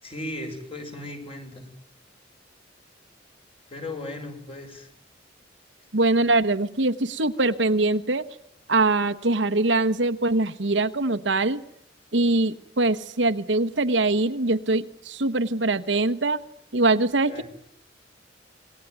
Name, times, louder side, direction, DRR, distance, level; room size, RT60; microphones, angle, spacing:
voice 1, 0.0-1.7 3.7-4.9 17.3-17.4, left 1 dB, 30° left, 4 dB, 6.6 m, -36 dB
voice 2, 5.9-8.3 8.7-11.6 12.1-16.4 16.7-17.4, right 2 dB, 70° right, 10 dB, 1.2 m, -23 dB
27.0 x 21.0 x 9.4 m, 0.70 s
head